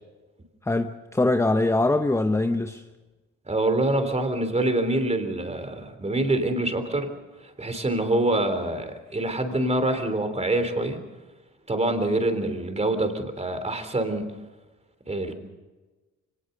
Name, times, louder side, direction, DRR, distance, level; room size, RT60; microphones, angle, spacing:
voice 1, 0.6-2.8, left 2 dB, 10° left, 7 dB, 0.9 m, -23 dB
voice 2, 3.5-7.1 7.6-11.0 11.7-14.3 15.1-15.3, right 2 dB, 20° right, 8 dB, 3.5 m, -25 dB
24.0 x 18.5 x 6.8 m, 1.2 s
cardioid pair, 90°, 30 cm